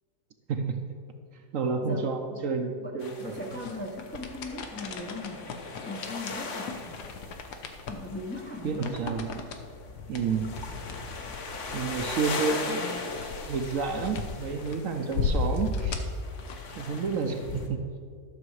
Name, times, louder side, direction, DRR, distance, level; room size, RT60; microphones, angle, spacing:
voice 1, 0.5-0.8 1.5-3.5 8.6-9.5 10.1-10.6 11.7-13.2 13.5-16.1 16.8-17.8, right 5 dB, 65° right, 5 dB, 1.0 m, -30 dB
voice 2, 1.8-2.4 2.8-5.5 5.8-7.1 7.9-9.0, left 2 dB, 10° left, 0 dB, 0.5 m, -39 dB
Baltic Sea, 3.0-17.7, left 3 dB, 50° left, 1.2 m, -39 dB
sound 1, 3.2-16.9, left 4 dB, 80° left, 1.4 m, -36 dB
12.5 x 6.7 x 4.8 m, 2.2 s
omnidirectional pair, 1.7 m